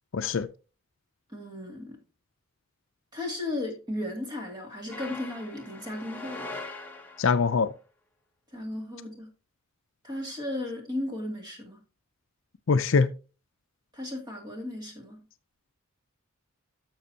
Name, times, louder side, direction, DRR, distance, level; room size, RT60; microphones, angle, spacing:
voice 1, 0.1-0.5 7.2-7.7 12.7-13.1, left 5 dB, 60° left, 0.5 m, -23 dB
voice 2, 1.3-2.0 3.1-6.5 8.5-9.3 10.0-11.8 13.9-15.2, left 1 dB, 20° right, 2.4 m, -35 dB
sound 1, 4.9-7.5, left 2 dB, 10° left, 1.1 m, -41 dB
11.5 x 6.8 x 2.8 m
head